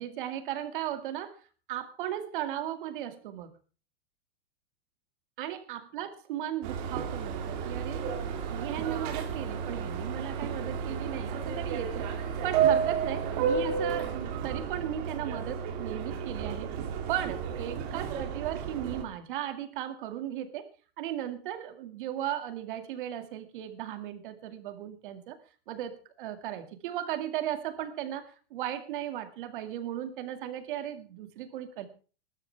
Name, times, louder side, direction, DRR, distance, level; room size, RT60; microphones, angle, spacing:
voice 1, 0.0-1.4 1.7-3.5 5.4-8.1 8.5-12.1 12.4-16.7 17.1-20.7 21.0-25.4 25.7-31.9, right 11 dB, 55° right, 8 dB, 2.2 m, -36 dB
Subway metro underground, 6.6-19.0, right 7 dB, 40° right, 2.6 m, -32 dB
20.0 x 12.5 x 3.4 m, 0.37 s
supercardioid pair, 170°, 30 cm